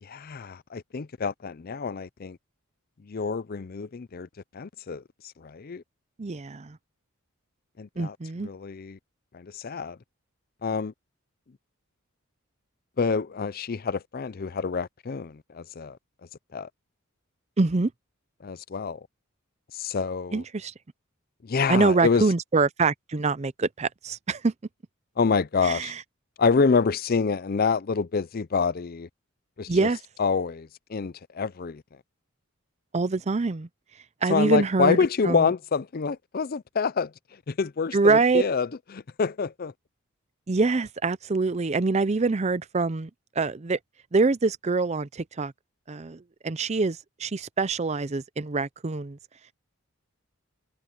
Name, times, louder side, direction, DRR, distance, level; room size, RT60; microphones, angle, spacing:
voice 1, 0.0-2.4 3.0-4.3 4.5-5.0 5.4-5.8 7.8-9.0 9.3-10.0 10.6-10.9 13.0-16.0 16.5-16.7 18.4-19.1 19.7-20.4 21.4-22.3 25.2-25.9 26.4-29.1 29.6-29.9 30.2-31.8 34.3-37.1 37.5-39.7, left 5 dB, 45° left, 0.5 m, -27 dB
voice 2, 6.2-6.8 8.0-8.5 17.6-17.9 20.3-20.7 21.7-24.5 25.6-26.0 29.7-30.0 32.9-33.7 34.2-35.0 35.2-35.5 37.9-38.4 40.5-43.1 43.4-43.8 44.1-45.5 45.9-49.2, right 3 dB, 30° right, 0.5 m, -25 dB
head